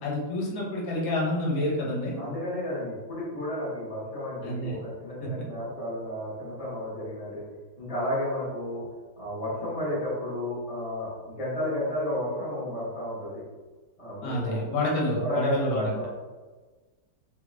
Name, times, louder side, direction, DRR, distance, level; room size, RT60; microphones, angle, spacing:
voice 1, 0.0-2.2 4.4-4.8 5.2-5.3 14.2-16.0, left 1 dB, 85° left, -2 dB, 1.5 m, -28 dB
voice 2, 2.2-7.4 7.8-8.8 9.2-13.4 14.0-14.6 15.1-16.1, left 1 dB, 20° left, -10 dB, 1.4 m, -32 dB
3.7 x 2.9 x 2.4 m, 1.3 s
omnidirectional pair, 2.0 m